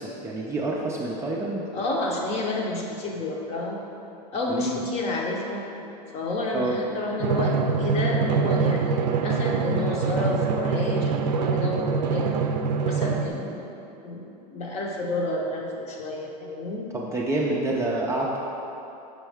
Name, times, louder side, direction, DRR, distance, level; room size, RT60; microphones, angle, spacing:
voice 1, 0.0-1.6 4.5-4.8 6.5-6.8 13.3-13.5 16.9-18.4, right 2 dB, 15° right, -4 dB, 0.4 m, -28 dB
voice 2, 1.7-3.8 4.3-5.6 6.1-12.4 12.8-13.7 14.0-16.9, left 2 dB, 30° left, -1 dB, 0.8 m, -30 dB
Drum, 7.2-13.3, right 5 dB, 80° right, 0.5 m, -24 dB
6.3 x 4.4 x 3.4 m, 2.9 s
supercardioid pair, 125°, 21 cm